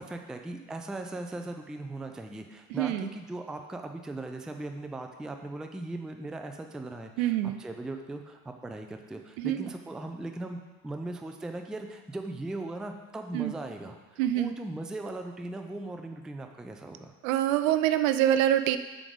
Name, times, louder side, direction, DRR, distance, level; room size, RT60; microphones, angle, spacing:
voice 1, 0.0-17.1, right 2 dB, ahead, 5 dB, 0.4 m, -39 dB
voice 2, 2.7-3.1 7.2-7.6 9.4-9.7 13.3-13.5 14.2-14.5 17.2-18.8, right 12 dB, 55° right, 11 dB, 0.6 m, -25 dB
8.4 x 4.9 x 5.3 m, 1.2 s
figure-of-eight pair, 60°, 47 cm